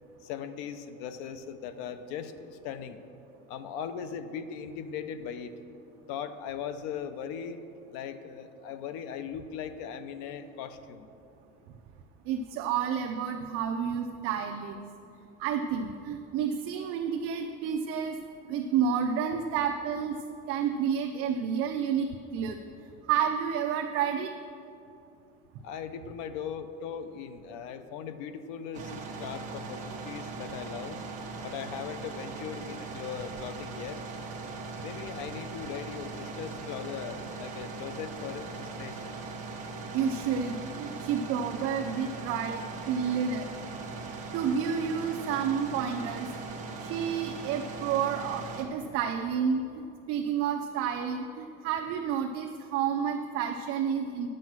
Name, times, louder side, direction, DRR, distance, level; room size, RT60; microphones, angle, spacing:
voice 1, 0.2-3.0 3.5-5.5 6.1-7.6 7.9-11.1 25.6-31.0 31.4-34.0 34.8-39.1, left 7 dB, 75° left, 11 dB, 0.7 m, -39 dB
voice 2, 12.3-14.8 15.4-18.2 18.5-20.2 20.5-22.6 23.1-24.3 39.9-43.5 44.3-46.3 46.8-54.3, right 7 dB, 50° right, 4 dB, 0.5 m, -30 dB
sound 1, 28.7-48.6, right 3 dB, 25° right, 1.1 m, -40 dB
10.5 x 7.7 x 6.1 m, 2.7 s
cardioid pair, 170°, 30 cm